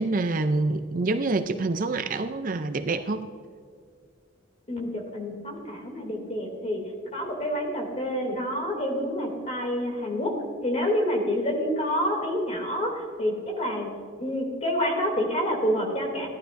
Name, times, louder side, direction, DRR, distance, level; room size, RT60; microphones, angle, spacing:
voice 1, 0.0-3.3, right 3 dB, 40° right, 8 dB, 0.5 m, -26 dB
voice 2, 4.7-6.8 7.1-10.3 10.6-13.9 14.2-16.3, equal, 30° left, 1 dB, 2.7 m, -28 dB
17.0 x 11.5 x 2.6 m, 2.1 s
head